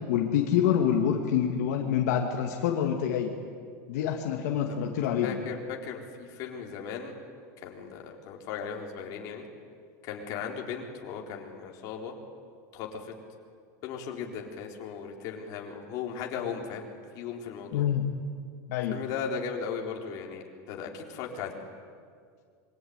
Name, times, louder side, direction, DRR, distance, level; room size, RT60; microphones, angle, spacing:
voice 1, 0.0-3.3 3.9-5.4 17.7-18.1 18.7-19.0, left 9 dB, 65° left, 2 dB, 2.4 m, -26 dB
voice 2, 5.2-7.2 7.6-9.4 10.0-12.1 12.7-13.1 13.8-16.9 17.1-17.9 18.9-21.6, left 6 dB, 40° left, 0 dB, 3.9 m, -37 dB
26.0 x 23.5 x 9.6 m, 2.1 s
supercardioid pair, 170°, 9 cm